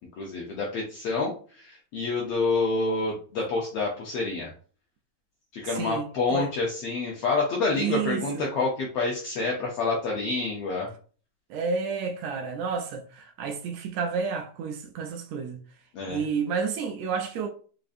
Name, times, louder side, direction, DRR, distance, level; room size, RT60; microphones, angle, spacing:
voice 1, 0.2-4.5 5.5-10.9 15.9-16.2, left 3 dB, 75° left, 1.4 m, -28 dB
voice 2, 5.7-6.5 7.8-8.5 11.5-15.6 16.1-17.5, right 5 dB, 80° right, 1.6 m, -30 dB
5.0 x 2.5 x 2.5 m
omnidirectional pair, 3.4 m